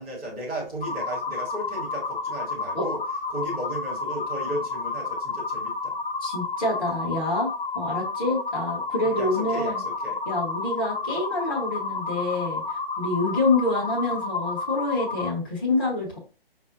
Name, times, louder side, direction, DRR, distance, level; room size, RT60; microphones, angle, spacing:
voice 1, 0.0-3.0 3.3-6.0 9.0-10.2, right 1 dB, 5° right, 0.7 m, -35 dB
sound 1, 0.8-15.3, left 4 dB, 60° left, 0.6 m, -31 dB
voice 2, 6.2-7.5 7.7-9.8 10.3-16.2, left 2 dB, 20° left, 1.1 m, -27 dB
5.3 x 2.1 x 2.5 m
figure-of-eight pair, 145°, 30 cm